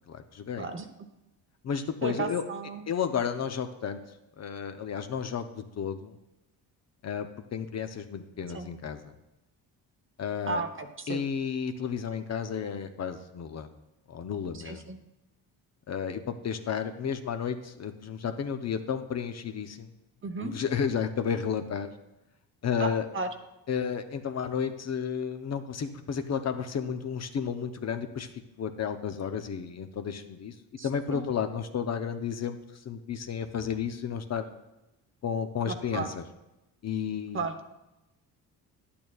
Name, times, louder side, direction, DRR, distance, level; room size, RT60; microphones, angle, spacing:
voice 1, 0.1-0.7 1.6-2.4 2.9-4.0 4.4-6.1 7.0-9.1 10.2-10.6 11.1-13.7 14.1-14.8 15.9-19.9 20.4-21.9 22.6-23.1 23.7-28.3 28.6-30.5 30.8-32.6 32.8-34.5 35.2-36.2 36.8-37.5, left 7 dB, 40° left, 8 dB, 0.7 m, -32 dB
voice 2, 2.0-2.9 8.5-8.7 10.5-11.2 14.5-15.0 20.2-20.6 22.8-23.3 30.8-31.2 35.6-36.1 37.3-37.7, right 4 dB, 30° right, 7 dB, 0.8 m, -34 dB
10.5 x 8.6 x 2.3 m, 0.94 s
cardioid pair, 75°, 39 cm